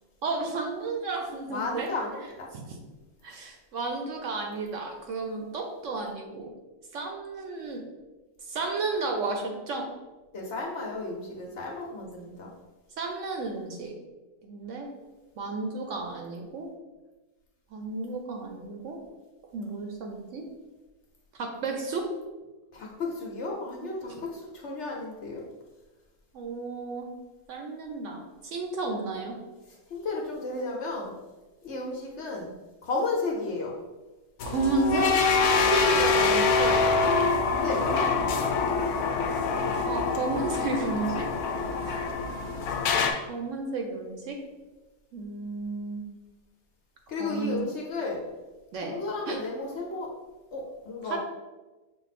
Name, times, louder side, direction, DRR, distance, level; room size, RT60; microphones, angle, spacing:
voice 1, 0.2-1.9 2.5-2.6 3.2-6.5 6.9-7.8 8.5-9.9 13.0-14.0 14.4-14.9 15.4-16.7 17.7-19.0 19.5-20.5 21.3-22.1 26.3-27.1 27.5-29.4 34.4-35.1 35.5-36.8 39.9-41.3 41.8-42.0 43.3-44.4 45.1-46.0 47.2-47.6 48.7-49.0 49.3-49.4 51.0-51.2, right 3 dB, 65° right, 2 dB, 0.9 m, -32 dB
voice 2, 1.5-2.5 10.3-12.5 22.7-25.4 29.9-31.1 31.6-32.5 32.8-33.7 37.6-38.3 47.1-48.2 48.8-50.1 50.5-51.2, left 3 dB, 55° left, -1 dB, 0.9 m, -33 dB
sound 1, 34.4-43.1, left 4 dB, 80° left, 1.1 m, -25 dB
5.9 x 2.0 x 4.1 m, 1.2 s
omnidirectional pair, 1.6 m